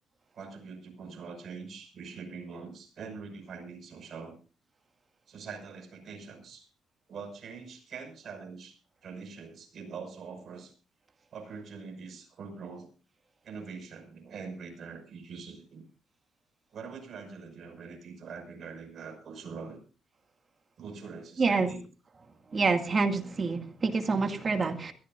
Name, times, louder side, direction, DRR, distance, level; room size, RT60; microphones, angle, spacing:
voice 1, 0.3-4.4 5.3-6.7 7.1-10.7 11.3-12.9 13.4-15.8 16.7-19.8 20.8-21.8, right 5 dB, 60° right, 5 dB, 5.9 m, -43 dB
voice 2, 21.4-21.7 22.5-24.9, right 4 dB, 35° right, 6 dB, 2.2 m, -27 dB
22.5 x 14.5 x 2.6 m, 0.37 s
cardioid pair, 90°, 0 cm